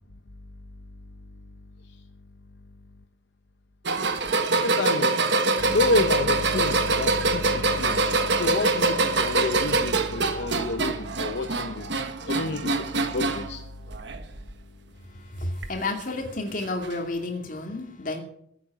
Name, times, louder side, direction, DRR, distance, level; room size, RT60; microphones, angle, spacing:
sound 1, 3.9-13.5 13.9-14.5 15.6-15.7 16.8-16.9, right 3 dB, 55° right, 1.3 m, -24 dB
voice 1, 4.6-5.2 5.6-11.9 12.3-13.6, left 3 dB, 60° left, 9 dB, 0.7 m, -29 dB
voice 2, 15.1-18.2, left 2 dB, 40° left, 3 dB, 2.5 m, -31 dB
15.0 x 8.5 x 7.4 m, 0.69 s
head